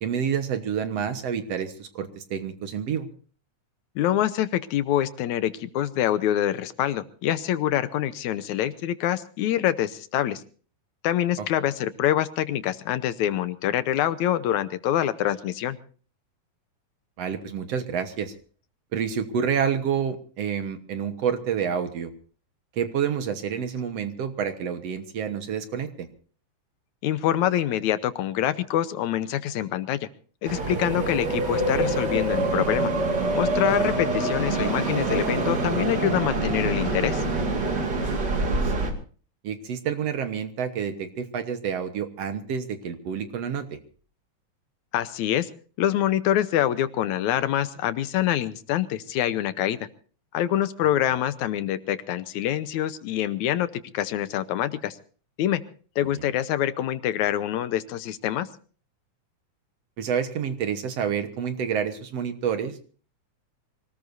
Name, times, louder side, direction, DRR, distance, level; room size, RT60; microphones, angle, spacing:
voice 1, 0.0-3.1 11.4-11.5 17.2-18.3 18.9-22.1 22.8-26.1 38.6-38.9 39.4-43.8 56.1-56.3 60.0-62.8, right 7 dB, 60° right, 8 dB, 2.2 m, -28 dB
voice 2, 4.0-10.4 11.0-15.8 27.0-30.0 30.4-32.9 33.3-37.2 44.9-45.5 45.8-49.8 50.3-53.7 53.9-55.0 55.4-55.6 56.0-58.5, left 11 dB, 75° left, 12 dB, 2.2 m, -25 dB
sound 1, 30.4-38.9, right 2 dB, 35° right, 2.7 m, -25 dB
25.0 x 18.5 x 2.7 m, 0.40 s
omnidirectional pair, 3.4 m